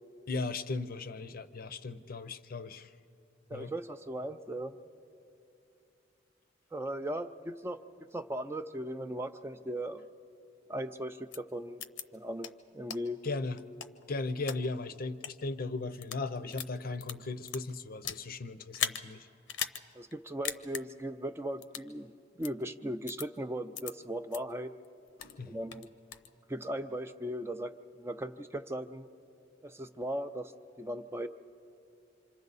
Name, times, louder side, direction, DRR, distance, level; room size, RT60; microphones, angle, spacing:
voice 1, 0.3-2.9 3.5-3.7 13.2-13.6 14.1-19.3 25.2-25.6, left 3 dB, 50° left, 12 dB, 0.6 m, -37 dB
voice 2, 3.5-4.8 6.7-7.8 8.1-10.0 10.7-11.8 12.1-13.2 19.9-22.1 22.4-24.7 25.5-25.9 26.5-27.7 28.0-29.1 29.6-30.5 30.8-31.3, right 1 dB, 15° right, 9 dB, 0.4 m, -38 dB
sound 1, 11.3-11.4 11.8-12.0 12.4-12.5 12.9-13.0 13.6-14.6 15.1-15.3 15.9-16.2 16.5-18.2 18.7-19.0 19.5-19.8 20.1-20.2 20.4-20.8 21.6-21.9 22.4-22.5 23.1-23.3 23.7-23.9 24.3-24.4 24.8-25.4 25.7-26.3, left 8 dB, 85° left, 0.8 m, -37 dB
27.0 x 26.5 x 4.1 m, 2.7 s
head